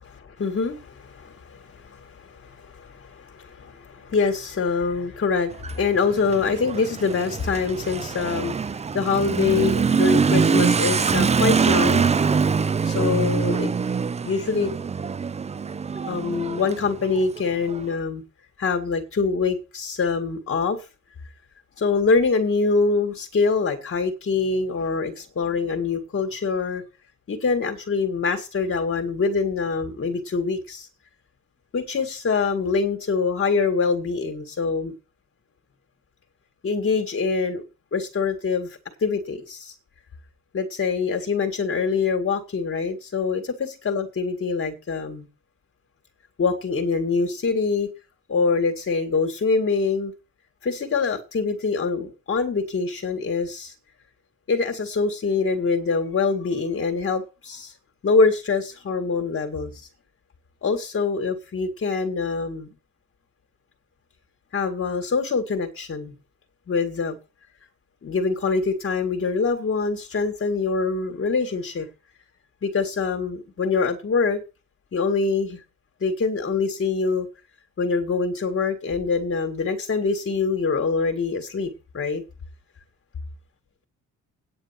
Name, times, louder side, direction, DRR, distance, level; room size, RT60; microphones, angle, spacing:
voice 1, 0.0-8.6 8.9-12.0 12.8-13.7 14.2-14.8 16.1-18.2 18.6-20.8 21.8-26.8 27.3-30.9 31.7-34.9 36.6-37.6 37.9-38.7 39.0-39.7 40.5-45.3 46.4-47.9 48.3-50.1 50.6-53.7 54.5-57.7 58.0-59.9 60.6-62.7 64.5-66.1 66.7-67.2 68.0-71.9 72.6-74.4 74.9-75.6 76.0-77.3 77.8-82.2, left 4 dB, 45° left, 2.0 m, -24 dB
Motorcycle / Accelerating revving vroom, 5.5-17.8, right 5 dB, 20° right, 0.5 m, -23 dB
9.2 x 8.0 x 5.8 m
cardioid pair, 90°, 30 cm